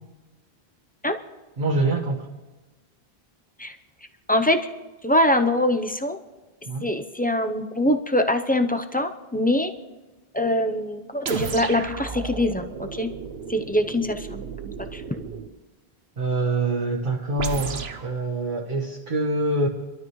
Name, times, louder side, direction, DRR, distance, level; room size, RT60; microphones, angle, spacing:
voice 1, 1.6-2.3 6.7-6.9 16.2-19.7, right 2 dB, 55° right, -3 dB, 1.5 m, -25 dB
voice 2, 4.3-4.7 5.0-6.2 6.8-9.7 10.3-13.1 13.5-15.2, left 1 dB, 10° left, 7 dB, 0.5 m, -23 dB
sound 1, 11.3-15.6 17.4-18.1, right 6 dB, 80° right, 1.1 m, -33 dB
28.5 x 12.5 x 3.1 m, 1.2 s
omnidirectional pair, 1.0 m